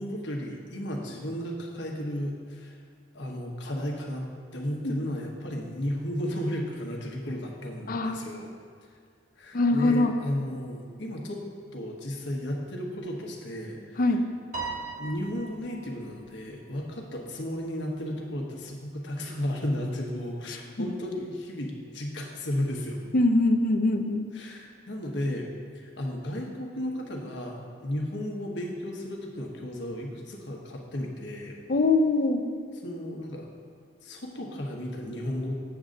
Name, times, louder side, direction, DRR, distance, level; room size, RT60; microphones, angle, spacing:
voice 1, 0.0-2.8 3.1-4.2 4.5-8.5 9.4-11.4 11.7-14.0 15.0-23.0 24.3-25.5 25.7-31.6 32.8-33.5 34.0-35.6, left 1 dB, 75° left, 0 dB, 1.2 m, -34 dB
voice 2, 7.9-8.3 9.5-10.1 14.0-14.2 20.8-20.9 23.1-24.3 31.7-32.4, left 2 dB, 50° left, 6 dB, 0.5 m, -23 dB
Piano, 14.5-16.1, right 4 dB, 45° right, 1.1 m, -37 dB
8.0 x 3.8 x 6.5 m, 2.2 s
head